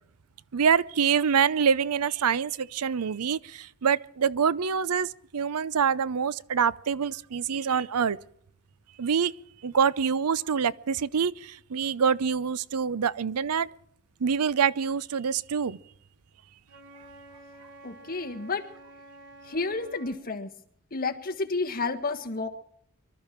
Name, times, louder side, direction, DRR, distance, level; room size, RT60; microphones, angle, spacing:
voice 1, 0.5-8.2 9.0-9.3 9.6-13.7 14.2-15.8, right 6 dB, 90° right, 0.6 m, -25 dB
Wind instrument woodwind instrument, 16.7-20.2, right 1 dB, 55° right, 3.0 m, -50 dB
voice 2, 17.8-18.6 19.5-20.5 20.9-22.5, left 3 dB, 40° left, 1.6 m, -30 dB
24.0 x 13.0 x 4.5 m
head